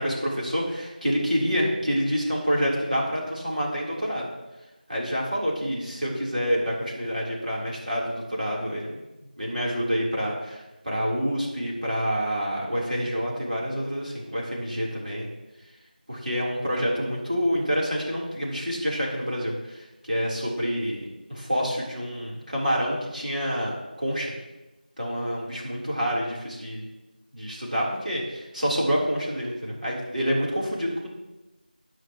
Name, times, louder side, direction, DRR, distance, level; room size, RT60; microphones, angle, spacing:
voice 1, 0.0-4.3 4.9-15.3 16.1-24.3 25.0-26.9 27.3-31.1, equal, 55° right, -4 dB, 3.5 m, -27 dB
14.5 x 9.4 x 3.0 m, 1.0 s
figure-of-eight pair, 180°, 5 cm